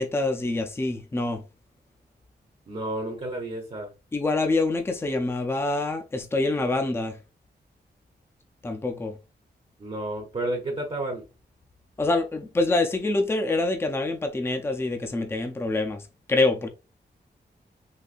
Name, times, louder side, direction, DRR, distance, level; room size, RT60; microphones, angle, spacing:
voice 1, 0.0-1.4 4.1-7.2 8.6-9.2 12.0-16.0 16.3-16.7, left 2 dB, 15° left, 0.4 m, -26 dB
voice 2, 2.7-3.9 9.8-11.2, right 1 dB, 35° right, 0.7 m, -31 dB
3.9 x 2.6 x 2.4 m
wide cardioid pair, 155°, 18 cm